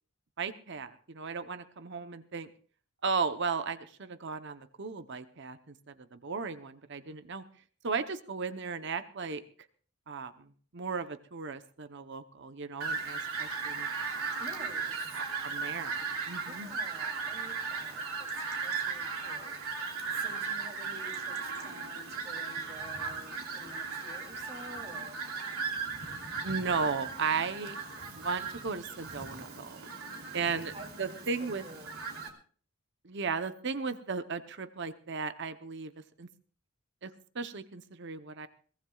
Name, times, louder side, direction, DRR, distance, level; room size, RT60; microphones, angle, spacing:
voice 1, 0.4-2.5 3.0-5.6 6.1-7.4 7.8-9.4 10.1-10.3 10.7-13.9 15.1-16.7 26.4-27.7 28.1-29.9 30.3-30.7 31.0-31.6 33.0-35.9 36.2-36.3 37.0-38.5, right 5 dB, 55° right, 11 dB, 0.8 m, -35 dB
Fowl, 12.8-32.3, right 5 dB, 85° right, 3.0 m, -37 dB
voice 2, 14.4-15.0 16.4-25.2 29.8-30.4 30.7-32.0, right 1 dB, 30° right, 2 dB, 2.8 m, -50 dB
22.5 x 18.0 x 2.4 m, 0.43 s
head